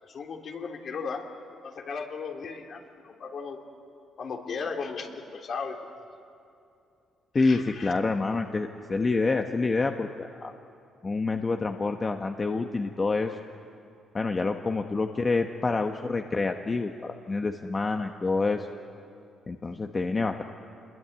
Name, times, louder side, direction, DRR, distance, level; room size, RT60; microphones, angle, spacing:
voice 1, 0.0-1.2 1.6-3.6 4.2-5.8 7.3-7.9, left 5 dB, 55° left, 2 dB, 3.3 m, -36 dB
voice 2, 7.3-10.5 11.0-13.4 14.1-18.7 19.5-20.4, left 3 dB, 30° left, 4 dB, 1.2 m, -27 dB
27.0 x 22.0 x 9.6 m, 2.6 s
cardioid pair, 90°, 0 cm